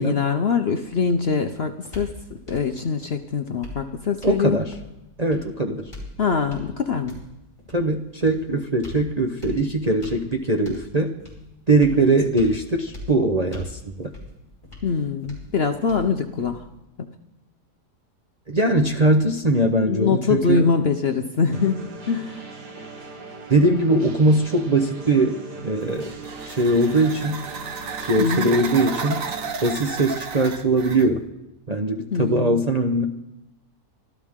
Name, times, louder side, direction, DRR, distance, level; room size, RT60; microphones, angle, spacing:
voice 1, 0.0-2.1 2.5-4.6 6.2-7.2 11.9-12.1 14.8-16.6 17.0-17.1 19.8-21.8 22.1-22.4 28.2-28.5 32.1-32.6, left 5 dB, 50° left, 6 dB, 0.8 m, -23 dB
sound 1, 0.8-16.8, left 2 dB, 15° left, 4.8 m, -42 dB
voice 2, 4.2-4.7 5.2-5.8 7.7-11.1 11.7-14.1 18.5-20.7 23.5-26.1 26.4-27.4 28.1-29.2 29.6-31.2 31.7-33.0, right 2 dB, 30° right, 2 dB, 0.8 m, -21 dB
sound 2, 21.5-29.5, right 3 dB, 85° right, 2.2 m, -39 dB
sound 3, 25.8-31.1, right 5 dB, 60° right, 1.4 m, -33 dB
25.0 x 13.5 x 3.7 m, 0.92 s
omnidirectional pair, 1.7 m